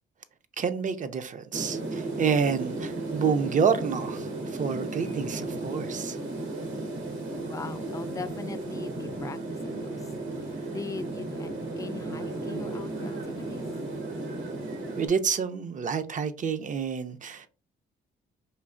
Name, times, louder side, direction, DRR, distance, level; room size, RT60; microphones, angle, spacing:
voice 1, 0.6-6.2 15.0-17.5, right 6 dB, 40° right, 0.5 m, -28 dB
sound 1, 1.5-15.1, right 2 dB, 80° right, 1.5 m, -34 dB
voice 2, 7.5-13.7, left 4 dB, 15° left, 0.4 m, -40 dB
4.4 x 2.8 x 2.5 m
cardioid pair, 90°, 20 cm